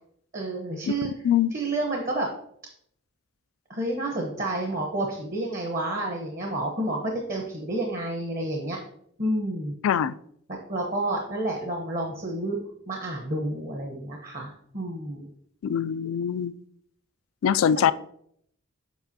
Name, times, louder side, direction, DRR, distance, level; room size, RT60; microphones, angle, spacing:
voice 1, 0.3-1.1 1.5-2.3 3.7-8.8 9.2-9.7 10.5-12.6 12.9-15.3 17.8-17.9, right 1 dB, 45° right, 1.0 m, -30 dB
voice 2, 9.8-10.1 15.6-16.5 17.4-17.9, left 8 dB, 90° left, 0.3 m, -23 dB
7.9 x 5.1 x 2.8 m
head